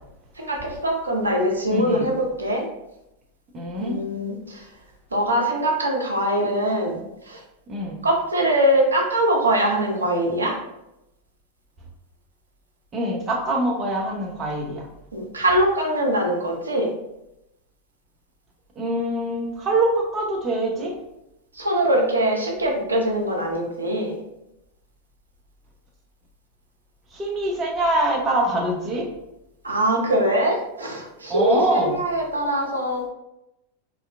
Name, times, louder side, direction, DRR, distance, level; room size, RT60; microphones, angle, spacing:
voice 1, 0.4-2.1 2.4-2.6 3.8-4.3 5.1-7.0 7.3-7.4 8.0-10.5 15.1-16.9 21.6-24.2 29.6-33.1, right 1 dB, 75° right, 0 dB, 0.5 m, -22 dB
voice 2, 1.7-2.1 3.5-4.0 7.7-8.0 12.9-14.8 18.8-20.9 27.1-29.1 31.3-32.0, right 1 dB, 25° right, -1 dB, 0.7 m, -24 dB
2.7 x 2.2 x 2.3 m, 0.87 s
figure-of-eight pair, 90°, 0 cm